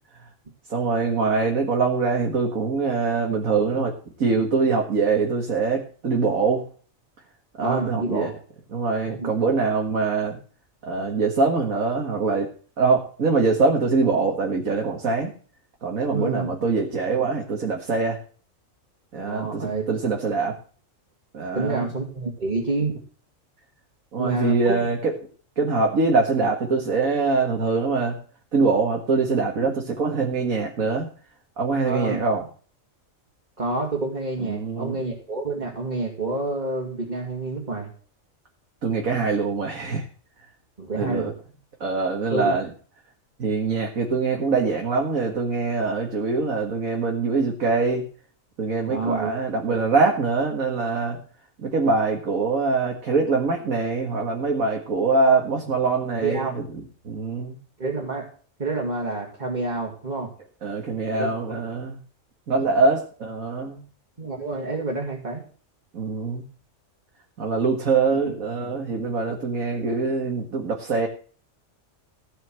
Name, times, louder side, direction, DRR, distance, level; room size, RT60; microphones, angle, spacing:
voice 1, 0.7-3.9 4.2-6.7 7.6-8.3 8.7-10.4 10.8-12.5 12.8-15.3 15.8-18.2 19.1-20.6 21.3-21.9 24.1-25.1 25.6-28.2 28.5-31.1 31.6-32.4 34.4-35.0 38.8-40.0 41.0-41.3 41.8-42.7 43.4-48.0 48.6-51.2 51.6-56.6 57.0-57.6 60.6-62.0 62.5-63.8 65.9-66.4 67.4-71.1, right 4 dB, 85° right, 1 dB, 2.3 m, -23 dB
voice 2, 7.6-8.3 9.1-9.4 16.1-16.5 19.2-19.8 21.5-22.9 24.2-24.8 31.8-32.2 33.6-37.9 40.8-41.3 42.3-42.6 48.9-49.3 49.7-49.8 56.2-56.5 57.8-58.3 58.6-60.3 61.1-61.6 64.2-65.4 68.2-68.3, right 3 dB, 30° right, -1 dB, 2.5 m, -28 dB
16.5 x 5.8 x 7.7 m, 0.42 s
omnidirectional pair, 1.4 m